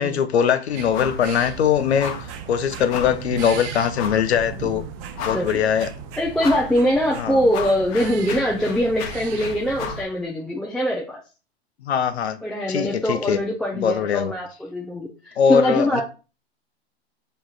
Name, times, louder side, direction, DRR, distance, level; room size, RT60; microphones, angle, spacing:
voice 1, 0.0-2.1 2.5-4.8 5.2-5.9 7.2-7.4 11.8-12.4 12.7-13.4 13.7-14.3 15.4-16.0, left 7 dB, 85° left, 0.7 m, -21 dB
sound 1, 0.8-10.0, right 6 dB, 40° right, 0.7 m, -36 dB
sound 2, 0.9-1.3 1.5-1.7 2.0-2.3 2.9-3.3 3.9-4.3 4.8-4.9 5.1-5.7 6.4-6.7 7.1-10.1, left 7 dB, 45° left, 0.9 m, -33 dB
voice 2, 4.5-4.9 5.3-5.8 6.2-11.2 12.4-16.0, equal, ahead, 0.4 m, -23 dB
6.1 x 3.1 x 2.4 m
hypercardioid pair, 120°, 32 cm